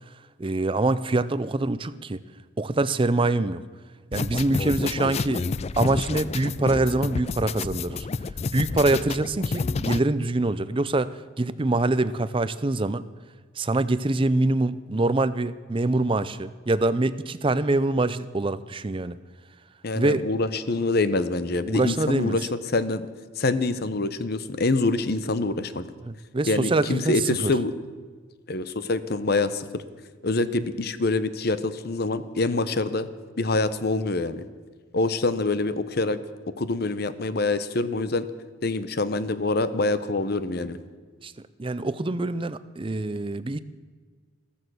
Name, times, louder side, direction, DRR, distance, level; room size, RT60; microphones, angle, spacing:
voice 1, 0.4-2.2 2.6-3.6 4.1-5.5 5.8-8.1 8.5-13.0 13.6-19.2 19.9-20.2 21.7-22.4 26.0-27.5 41.2-41.3 41.6-43.6, right 2 dB, 25° right, 14 dB, 0.5 m, -25 dB
sound 1, 4.1-10.0, left 4 dB, 30° left, 0.3 m, -29 dB
voice 2, 19.8-23.1 23.4-25.8 26.5-27.7 28.5-29.8 30.2-33.1 33.4-34.5 34.9-36.2 36.6-38.3 38.6-40.8, left 2 dB, 50° left, 13 dB, 0.8 m, -25 dB
14.5 x 14.5 x 6.3 m, 1.5 s
head